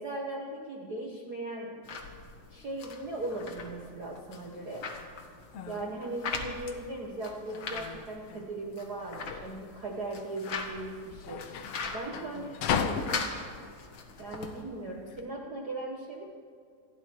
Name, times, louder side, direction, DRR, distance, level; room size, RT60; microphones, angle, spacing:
voice 1, 0.0-1.8 2.5-4.9 5.7-11.5 11.8-13.3 14.2-16.2, right 2 dB, 75° right, -1 dB, 0.8 m, -38 dB
sound 1, 1.8-14.6, left 4 dB, 50° left, 1.5 m, -41 dB
sound 2, 5.2-15.2, left 7 dB, 90° left, 1.3 m, -38 dB
28.0 x 10.5 x 4.7 m, 2.2 s
omnidirectional pair, 4.0 m